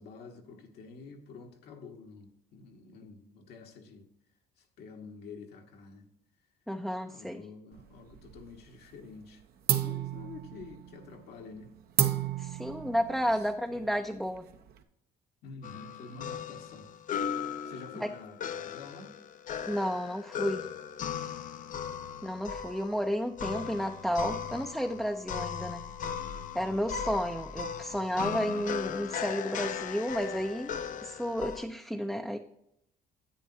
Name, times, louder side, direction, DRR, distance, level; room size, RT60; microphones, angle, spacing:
voice 1, 0.0-4.1 4.6-6.1 7.1-9.4 9.8-11.7 12.8-13.9 15.4-16.9 17.6-19.2 26.5-27.0, left 4 dB, 70° left, 2 dB, 1.5 m, -49 dB
voice 2, 6.7-7.4 12.4-14.5 18.0-18.1 19.7-20.7 22.2-25.9 26.5-32.4, equal, ahead, 4 dB, 0.5 m, -32 dB
sound 1, 7.7-8.6 8.9-9.3 9.7-14.8, right 11 dB, 65° right, 0.9 m, -33 dB
sound 2, 15.6-31.6, left 7 dB, 50° left, 0.6 m, -38 dB
10.0 x 8.3 x 2.8 m, 0.79 s
cardioid pair, 110°, 17 cm